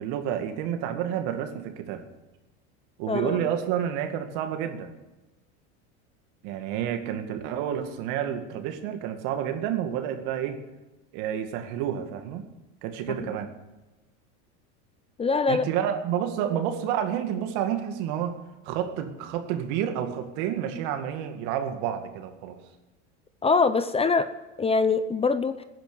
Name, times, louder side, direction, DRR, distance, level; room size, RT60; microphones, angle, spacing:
voice 1, 0.0-2.0 3.0-4.9 6.4-10.6 11.1-12.5 12.8-13.5 15.5-18.4 18.6-22.6, right 9 dB, 65° right, 6 dB, 2.2 m, -29 dB
voice 2, 3.1-3.4 13.2-13.4 15.2-15.6 23.4-24.3 24.6-25.6, left 4 dB, 15° left, 12 dB, 0.7 m, -23 dB
15.5 x 10.5 x 7.0 m, 1.1 s
supercardioid pair, 115°, 34 cm